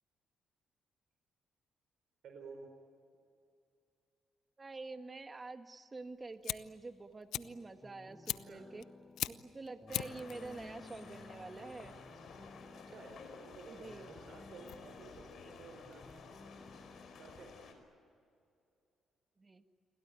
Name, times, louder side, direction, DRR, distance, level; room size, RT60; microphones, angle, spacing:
voice 1, 2.2-2.7 8.4-8.6 12.7-16.1 16.7-16.9 17.2-17.7, right 4 dB, 70° right, 3 dB, 4.5 m, -53 dB
voice 2, 4.6-8.8 9.3-12.0 13.7-14.1 19.4-19.6, right 3 dB, 25° right, 8 dB, 1.8 m, -47 dB
Fire, 6.0-16.5, left 12 dB, 85° left, 0.7 m, -44 dB
sound 1, 7.4-17.5, left 2 dB, 15° left, 0.7 m, -57 dB
sound 2, 9.9-17.7, left 5 dB, 65° left, 5.0 m, -53 dB
29.0 x 22.5 x 9.1 m, 2.5 s
cardioid pair, 90°, 0 cm